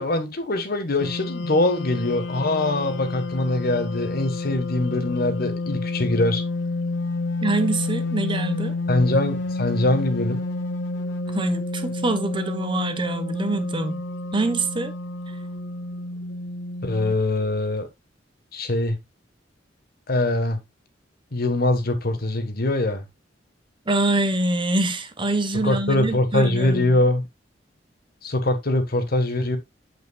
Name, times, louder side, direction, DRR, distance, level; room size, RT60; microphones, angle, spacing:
voice 1, 0.0-6.4 8.9-10.4 16.8-17.9 18.5-19.0 20.1-20.6 21.3-23.0 25.6-27.2 28.2-29.6, left 2 dB, 55° left, 1.4 m, -23 dB
sound 1, 1.0-17.1, left 2 dB, 75° left, 0.9 m, -30 dB
voice 2, 7.4-8.7 11.3-14.0 14.3-14.9 23.9-27.0, right 2 dB, 25° right, 1.0 m, -25 dB
8.3 x 7.7 x 2.3 m
head